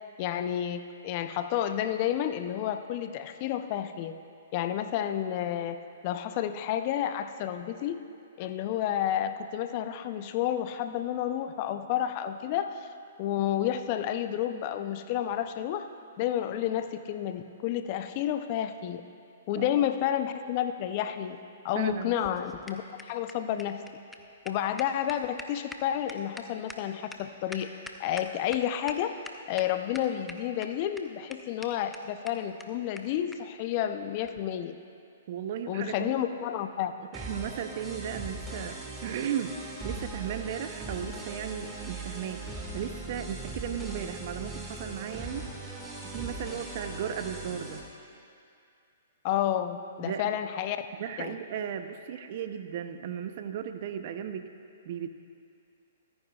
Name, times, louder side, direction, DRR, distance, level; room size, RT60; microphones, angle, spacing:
voice 1, 0.2-4.1 4.5-5.8 6.0-8.0 8.4-12.9 13.2-15.9 16.2-19.0 19.5-23.8 24.4-27.7 28.0-29.1 29.5-34.8 35.7-36.9 49.2-50.8 51.2-51.4, left 10 dB, 40° left, 9 dB, 0.6 m, -30 dB
voice 2, 19.5-19.9 21.7-22.1 35.3-36.2 37.1-39.6 39.8-42.4 42.7-45.5 46.0-47.8 50.0-50.2 51.0-54.5 54.8-55.1, right 9 dB, 50° right, 8 dB, 0.7 m, -35 dB
sound 1, 21.9-28.6 28.9-29.0 29.2-29.7 29.9-30.7 31.0-31.1 31.3-31.4 31.6-31.7 31.9-32.0 32.3-32.4 32.6-32.7 33.0-33.1 33.3-33.4 34.2-34.4, left 2 dB, 5° left, 0.7 m, -43 dB
sound 2, 37.1-47.8, right 2 dB, 10° right, 1.9 m, -40 dB
24.5 x 9.7 x 2.4 m, 2.5 s
hypercardioid pair, 120°, 0 cm